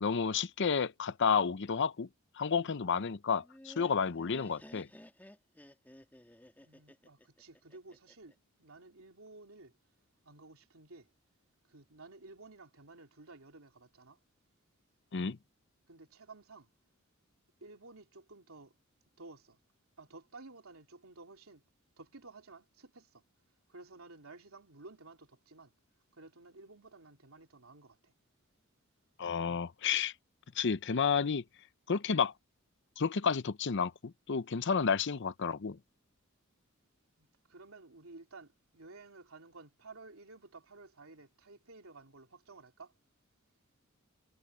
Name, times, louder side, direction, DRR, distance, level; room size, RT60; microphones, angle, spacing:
voice 1, 0.0-2.1 2.4-4.9 15.1-15.4 29.2-30.1 30.6-31.4 31.9-32.3 33.0-35.8, left 6 dB, 60° left, 0.7 m, -31 dB
Laughter, 3.3-8.3, left 1 dB, 10° left, 2.1 m, -55 dB
voice 2, 6.6-9.7 10.2-11.1 11.7-14.2 15.9-16.7 17.6-18.7 19.2-19.6 20.0-21.6 22.0-23.2 23.7-25.7 26.1-28.1 37.2-42.9, right 3 dB, 80° right, 3.1 m, -54 dB
head